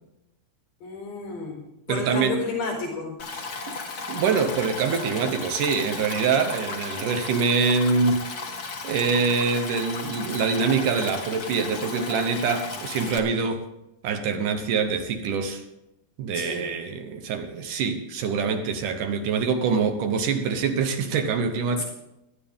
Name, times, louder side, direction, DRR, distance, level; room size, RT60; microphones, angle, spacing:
voice 1, 0.8-3.2 16.3-16.7 21.8-21.9, left 4 dB, 65° left, 6.3 m, -32 dB
voice 2, 1.9-2.4 3.7-3.8 4.1-8.3 8.8-13.7 14.0-15.6 16.2-21.8, right 5 dB, 70° right, 2.4 m, -25 dB
Stream, 3.2-13.2, left 4 dB, 45° left, 1.2 m, -35 dB
18.5 x 12.5 x 3.6 m
omnidirectional pair, 4.2 m